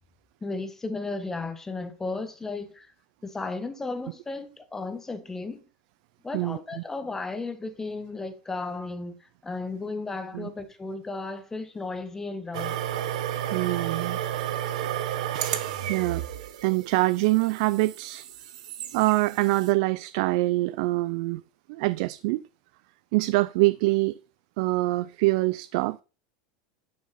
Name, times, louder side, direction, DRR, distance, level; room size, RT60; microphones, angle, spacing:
voice 1, 0.4-2.9 3.2-5.6 6.2-12.7 15.4-15.5, left 3 dB, 10° left, 1.4 m, -34 dB
sound 1, 12.5-19.7, right 11 dB, 85° right, 1.3 m, -32 dB
voice 2, 13.5-14.2 15.8-16.2 16.6-18.3 18.9-21.4 21.7-22.4 23.1-24.2 24.6-26.0, right 21 dB, 65° right, 0.4 m, -24 dB
11.0 x 6.3 x 4.2 m
supercardioid pair, 145°, 4 cm